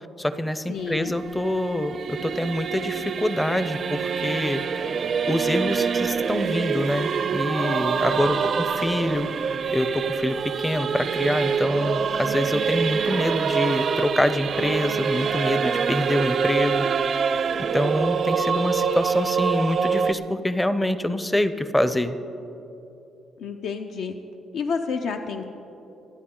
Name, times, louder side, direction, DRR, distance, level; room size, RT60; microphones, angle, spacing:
voice 1, 0.2-4.9 5.3-16.9 17.7-22.2, left 1 dB, 5° left, 12 dB, 0.5 m, -26 dB
voice 2, 0.7-1.1 8.1-8.5 23.4-24.1 24.5-25.6, left 5 dB, 75° left, 4 dB, 0.6 m, -30 dB
Singing / Musical instrument, 0.7-20.1, right 6 dB, 45° right, 0.5 m, -25 dB
25.5 x 9.5 x 3.8 m, 3.0 s
cardioid pair, 150°, 0 cm